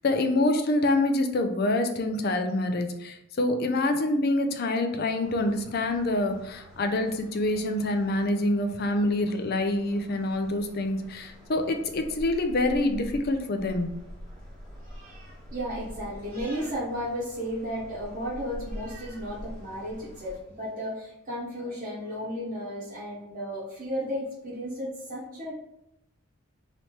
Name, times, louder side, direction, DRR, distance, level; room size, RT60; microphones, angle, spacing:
voice 1, 0.0-13.9, left 2 dB, 45° left, 6 dB, 0.4 m, -26 dB
sound 1, 5.2-20.4, equal, 5° left, 1.2 m, -45 dB
voice 2, 14.8-25.5, equal, 40° right, -8 dB, 0.9 m, -34 dB
3.2 x 3.0 x 4.2 m, 0.84 s
head